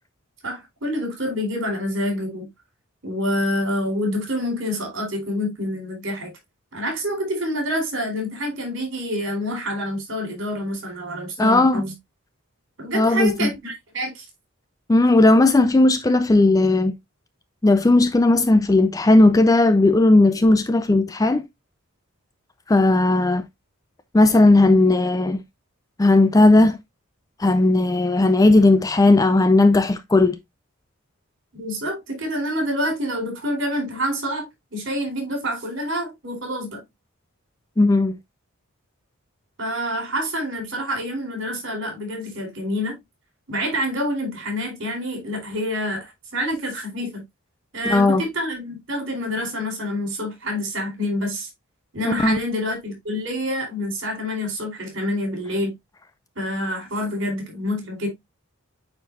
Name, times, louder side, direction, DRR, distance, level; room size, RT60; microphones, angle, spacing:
voice 1, 0.4-2.5 3.0-6.3 6.7-11.9 12.8-14.2 31.5-36.8 39.6-43.0 43.5-47.2 47.7-51.5 51.9-55.7 56.4-58.1, equal, 60° right, 4.0 m, -27 dB
voice 2, 11.4-11.8 12.9-13.5 14.9-16.9 17.6-21.4 22.7-23.4 24.1-25.4 26.0-26.8 27.4-30.4 37.8-38.2 47.9-48.2 52.0-52.4, left 2 dB, 15° left, 0.3 m, -16 dB
9.1 x 4.4 x 2.5 m
head